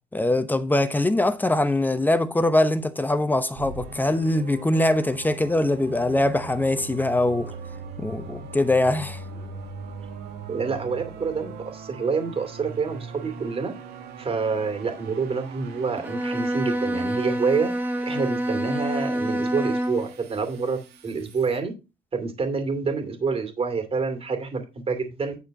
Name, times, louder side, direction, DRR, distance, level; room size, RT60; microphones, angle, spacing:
voice 1, 0.1-7.6 8.0-9.2, left 1 dB, 10° left, 0.8 m, -22 dB
sound 1, 3.5-21.6, right 4 dB, 75° right, 2.1 m, -41 dB
voice 2, 10.5-13.7 14.2-17.7 18.0-21.7 22.1-25.4, right 5 dB, 35° right, 2.5 m, -27 dB
Bowed string instrument, 16.0-20.2, right 1 dB, 10° right, 1.2 m, -27 dB
10.5 x 4.4 x 5.3 m
cardioid pair, 110°, 17 cm